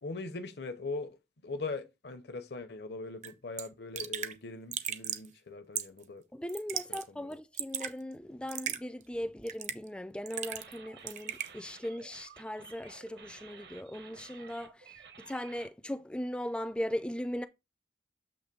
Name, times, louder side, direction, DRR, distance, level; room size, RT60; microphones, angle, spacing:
voice 1, 0.0-1.2 1.4-6.2 6.9-7.3, left 3 dB, 70° left, 0.7 m, -41 dB
Raindrop / Drip, 3.2-3.3 3.6-3.7 3.9-4.3 4.7-5.3 5.7-6.0 6.5-7.0 7.3-7.9 8.5-8.8 9.5-9.9 10.3-10.8 11.1-11.5, right 9 dB, 40° right, 0.6 m, -36 dB
voice 2, 6.3-17.5, equal, 5° left, 0.3 m, -38 dB
sound 1, 10.3-15.7, right 5 dB, 65° right, 1.0 m, -53 dB
7.8 x 3.0 x 5.2 m
head